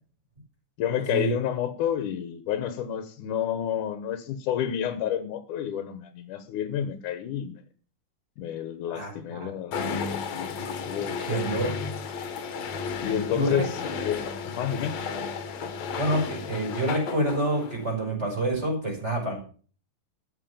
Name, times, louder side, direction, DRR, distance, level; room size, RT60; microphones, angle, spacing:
voice 1, 0.8-7.6 8.4-10.5 10.9-11.5 13.0-15.0, left 9 dB, 85° left, 10 dB, 2.5 m, -30 dB
voice 2, 8.9-9.5 11.2-11.7 13.3-13.6 16.0-19.4, right 1 dB, 20° right, 0 dB, 5.4 m, -27 dB
sound 1, 9.7-17.9, left 5 dB, 65° left, 2.5 m, -33 dB
13.0 x 8.1 x 7.1 m, 0.42 s
omnidirectional pair, 3.5 m